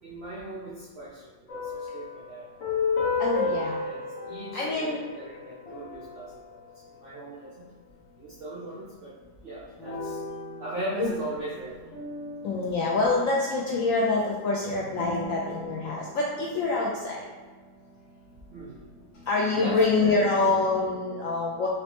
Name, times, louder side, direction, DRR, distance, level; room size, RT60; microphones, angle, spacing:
voice 1, 0.0-2.5 3.4-3.6 3.8-7.7 8.2-9.2 9.4-10.2 10.6-11.8 14.7-14.8 18.5-18.8 19.6-20.5, right 2 dB, 75° right, -6 dB, 0.5 m, -39 dB
sound 1, 1.5-7.4 9.8-13.6 14.8-17.5, left 4 dB, 50° left, 1.2 m, -34 dB
voice 2, 3.2-3.8 4.5-5.0 11.0-11.1 12.4-17.2 19.3-21.7, left 3 dB, 80° left, -3 dB, 0.7 m, -26 dB
4.2 x 3.1 x 2.9 m, 1.4 s
omnidirectional pair, 1.9 m